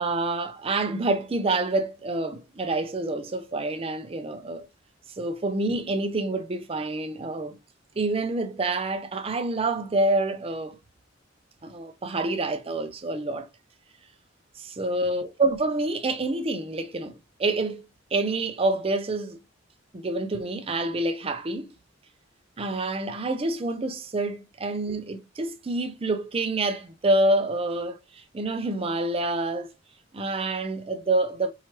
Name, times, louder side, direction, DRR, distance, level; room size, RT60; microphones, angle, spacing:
voice 1, 0.0-4.7 5.2-7.6 8.0-10.8 11.6-13.5 14.6-17.9 18.1-19.4 19.9-21.7 22.6-29.7 30.1-31.5, right 2 dB, 30° right, 0.5 m, -27 dB
4.7 x 3.0 x 2.9 m
head